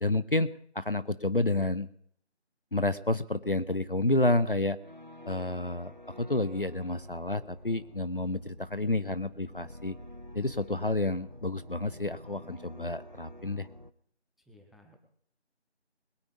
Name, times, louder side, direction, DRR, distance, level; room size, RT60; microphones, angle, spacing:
voice 1, 0.0-1.9 2.7-4.8 5.3-10.0 10.3-13.7, left 2 dB, 55° left, 14 dB, 0.5 m, -30 dB
sound 1, 4.8-13.9, left 1 dB, 45° right, 0.4 m, -49 dB
voice 2, 14.4-15.1, left 1 dB, ahead, 2 dB, 0.8 m, -58 dB
21.5 x 8.1 x 5.2 m, 0.64 s
figure-of-eight pair, 180°, 34 cm